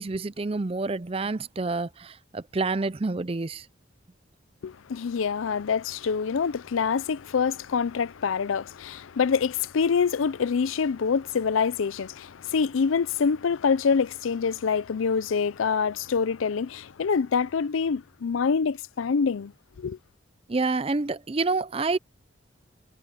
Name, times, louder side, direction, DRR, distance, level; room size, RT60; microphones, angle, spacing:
voice 1, 0.0-3.6 20.5-22.0, right 3 dB, 30° right, 0.5 m, -28 dB
voice 2, 4.6-19.5 19.8-20.0, left 6 dB, 90° left, 0.5 m, -26 dB
head